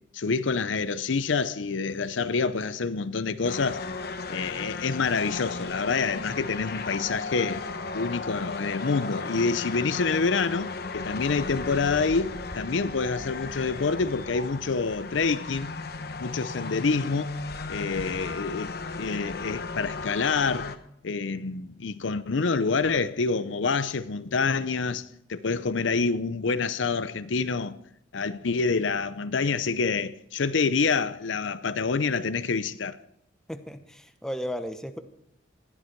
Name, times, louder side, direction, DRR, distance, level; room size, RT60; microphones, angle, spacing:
voice 1, 0.1-3.8 4.3-7.6 7.9-15.7 16.2-17.3 17.7-20.8 21.0-27.8 28.1-33.0, left 4 dB, 70° left, 0.6 m, -27 dB
sound 1, 3.4-20.8, left 3 dB, 50° left, 0.9 m, -35 dB
voice 2, 33.5-35.0, equal, 5° left, 0.9 m, -34 dB
20.5 x 13.5 x 4.6 m
head